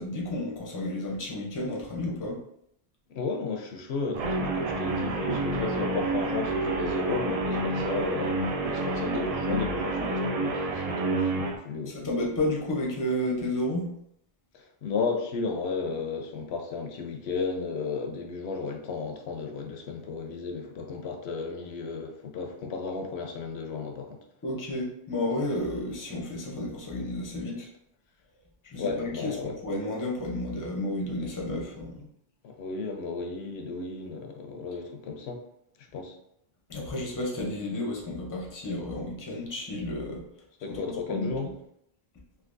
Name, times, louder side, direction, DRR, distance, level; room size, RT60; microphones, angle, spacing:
voice 1, 0.0-2.4 11.9-13.9 24.4-27.7 28.6-32.1 36.7-40.2 40.7-41.5, left 1 dB, 25° left, -2 dB, 0.6 m, -32 dB
voice 2, 3.1-12.0 14.5-24.2 28.8-29.6 32.4-35.4 35.8-36.1 40.6-41.5, left 4 dB, 85° left, 3 dB, 0.8 m, -34 dB
Guitar, 4.1-11.6, right 2 dB, 55° right, 0.4 m, -29 dB
3.4 x 2.6 x 2.5 m, 0.73 s
omnidirectional pair, 1.1 m